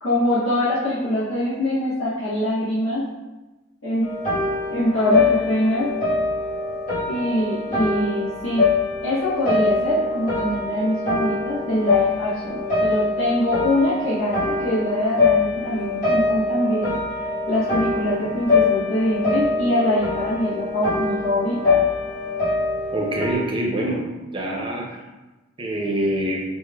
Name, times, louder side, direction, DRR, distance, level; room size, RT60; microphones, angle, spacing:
voice 1, 0.0-3.0 3.8-4.0 4.7-5.9 7.1-8.6 9.0-21.8, left 1 dB, 75° left, -11 dB, 1.1 m, -23 dB
sound 1, 4.0-23.3, left 3 dB, 40° left, 1.3 m, -24 dB
voice 2, 22.9-24.0 24.3-25.0 25.6-26.4, right 1 dB, 25° right, -2 dB, 0.7 m, -25 dB
5.4 x 3.0 x 2.3 m, 1.1 s
head